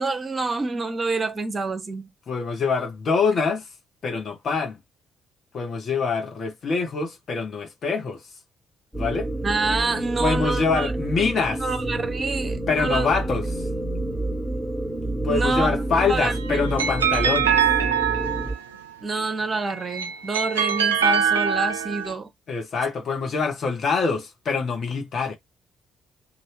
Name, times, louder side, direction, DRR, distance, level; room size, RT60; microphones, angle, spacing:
voice 1, 0.0-2.1 9.4-10.9 11.5-13.1 15.3-15.7 16.1-16.7 19.0-22.3, right 3 dB, 35° right, 0.8 m, -27 dB
voice 2, 2.3-3.7 4.0-4.8 5.5-8.3 8.9-9.3 10.2-11.6 12.7-13.7 15.2-17.6 22.5-25.4, left 5 dB, 50° left, 1.2 m, -25 dB
sound 1, 8.9-18.6, right 1 dB, 5° left, 1.5 m, -28 dB
sound 2, 16.1-18.8 19.7-22.1, right 8 dB, 85° right, 0.4 m, -23 dB
2.7 x 2.7 x 3.4 m
figure-of-eight pair, 40°, 0 cm